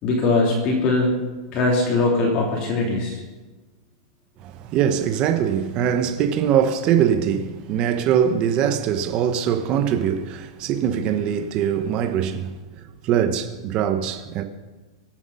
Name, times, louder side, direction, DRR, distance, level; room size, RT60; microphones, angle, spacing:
voice 1, 0.0-1.1 1.5-3.2, left 3 dB, 30° left, 2.8 m, -21 dB
voice 2, 4.4-14.4, right 8 dB, 30° right, 1.0 m, -22 dB
24.0 x 8.2 x 5.6 m
supercardioid pair, 165°, 3 cm